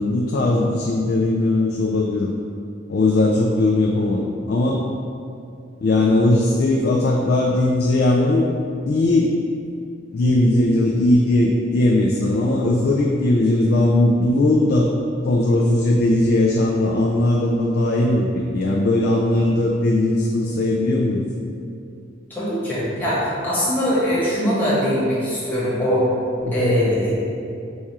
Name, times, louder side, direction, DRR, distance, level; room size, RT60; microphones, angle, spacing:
voice 1, 0.0-2.3 2.9-4.8 5.8-8.5 8.9-9.3 10.1-14.9 15.2-21.2 26.4-26.8, left 2 dB, 55° left, -1 dB, 0.3 m, -19 dB
voice 2, 22.3-26.1 26.5-27.3, equal, 10° left, -10 dB, 1.1 m, -21 dB
4.2 x 2.4 x 4.6 m, 2.6 s
head